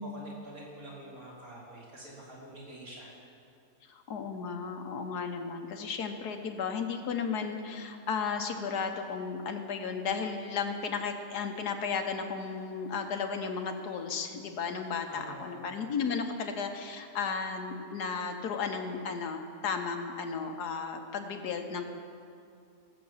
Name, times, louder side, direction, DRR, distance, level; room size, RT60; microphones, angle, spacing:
voice 1, 0.0-3.3 15.1-15.8, right 1 dB, 60° right, -7 dB, 4.2 m, -47 dB
voice 2, 3.9-22.0, left 5 dB, 75° left, 5 dB, 1.5 m, -34 dB
18.0 x 7.6 x 7.2 m, 2.4 s
omnidirectional pair, 1.7 m